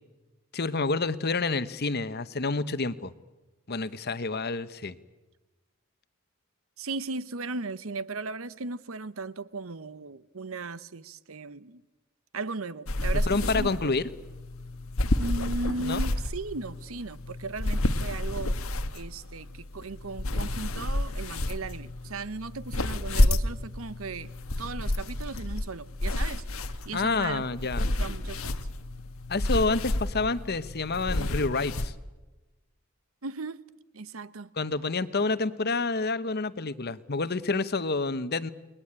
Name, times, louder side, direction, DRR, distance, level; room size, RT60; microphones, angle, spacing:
voice 1, 0.5-3.1 3.7-5.0 13.3-14.0 15.8-16.0 26.9-27.9 29.3-31.9 34.6-38.5, left 3 dB, 50° left, 1.1 m, -28 dB
voice 2, 6.8-11.8 12.3-13.7 15.2-18.6 18.9-24.3 24.6-26.4 26.8-27.4 27.8-28.6 31.1-31.4 33.2-33.6 33.9-34.5, right 3 dB, 85° right, 1.0 m, -37 dB
sound 1, 12.9-31.9, left 1 dB, 90° left, 1.4 m, -30 dB
29.5 x 21.0 x 8.9 m
head